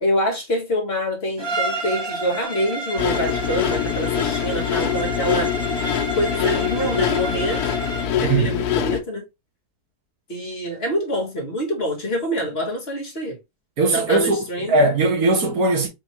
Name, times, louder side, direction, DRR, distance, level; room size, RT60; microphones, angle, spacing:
voice 1, 0.0-5.5 6.2-7.6 8.2-9.2 10.3-13.4 13.8-14.8, equal, 45° left, 1.3 m, -26 dB
Bowed string instrument, 1.4-8.2, right 2 dB, 25° right, 0.6 m, -30 dB
sound 1, 3.0-9.0, left 10 dB, 80° left, 1.1 m, -24 dB
voice 2, 8.2-8.5 13.8-15.9, right 2 dB, 70° right, 1.7 m, -19 dB
4.6 x 3.1 x 2.9 m
omnidirectional pair, 1.7 m